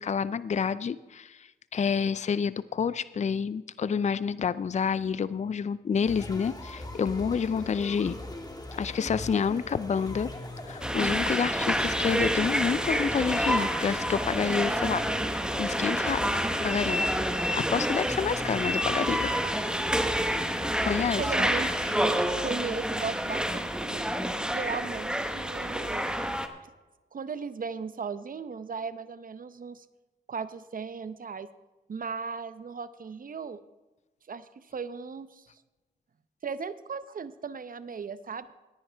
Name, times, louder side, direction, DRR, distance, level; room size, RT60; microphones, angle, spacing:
voice 1, 0.0-8.2 8.8-10.3 10.7-17.1 17.5-19.3 20.8-21.5, left 6 dB, 40° left, 16 dB, 0.4 m, -29 dB
sound 1, 6.1-22.1, left 1 dB, 20° left, 1.8 m, -40 dB
sound 2, 10.8-26.5, equal, 5° right, 1.1 m, -28 dB
voice 2, 21.2-21.7 22.4-24.1 24.5-26.1 27.1-29.8 30.3-31.5 31.9-33.6 34.3-35.5 36.4-38.5, right 5 dB, 50° right, 13 dB, 0.8 m, -37 dB
18.0 x 10.0 x 3.4 m, 1.1 s
cardioid pair, 55°, 18 cm